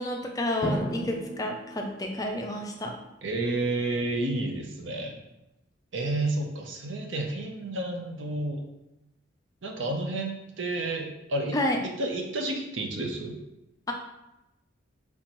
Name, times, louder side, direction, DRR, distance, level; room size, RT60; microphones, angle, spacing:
voice 1, 0.0-3.0 11.5-11.8, left 1 dB, 20° left, 2 dB, 0.4 m, -30 dB
Drum, 0.6-3.1, equal, 15° right, 0.8 m, -35 dB
voice 2, 3.2-5.2 5.9-8.6 9.6-11.6 12.0-13.4, right 2 dB, 75° right, 2 dB, 0.7 m, -30 dB
4.2 x 3.5 x 3.0 m, 0.93 s
head